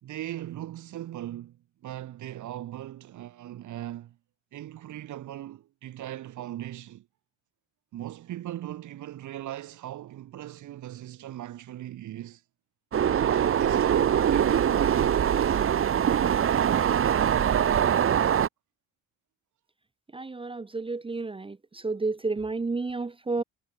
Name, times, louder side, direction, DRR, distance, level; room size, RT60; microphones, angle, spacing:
voice 1, 0.0-4.2 4.5-7.1 7.9-12.4 13.1-15.6, right 13 dB, 75° right, 2.4 m, -39 dB
sound 1, 12.9-18.5, right 9 dB, 45° right, 1.0 m, -23 dB
voice 2, 20.1-21.5 21.8-23.4, right 3 dB, 20° right, 0.7 m, -31 dB
cardioid pair, 90°, 30 cm